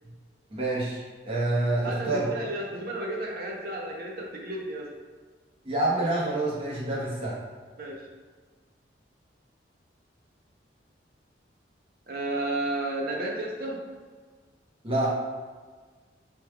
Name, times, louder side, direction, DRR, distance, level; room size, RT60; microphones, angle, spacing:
voice 1, 0.5-2.3 5.6-7.4 14.8-15.2, right 2 dB, 30° right, -6 dB, 1.0 m, -27 dB
voice 2, 1.8-4.9 7.8-8.0 12.1-13.8, right 1 dB, 55° right, -2 dB, 0.7 m, -32 dB
4.8 x 3.2 x 2.2 m, 1.5 s
head